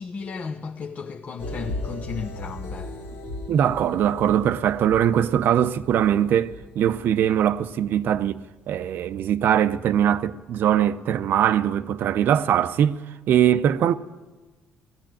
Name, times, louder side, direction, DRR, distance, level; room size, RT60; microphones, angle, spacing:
voice 1, 0.0-3.2, left 5 dB, 40° left, 0.9 m, -35 dB
sound 1, 1.4-9.3 9.7-9.8, left 2 dB, 85° left, 2.3 m, -38 dB
voice 2, 3.5-13.0 13.3-13.9, right 10 dB, 60° right, 0.8 m, -21 dB
19.5 x 15.0 x 9.0 m
cardioid pair, 115°, 4 cm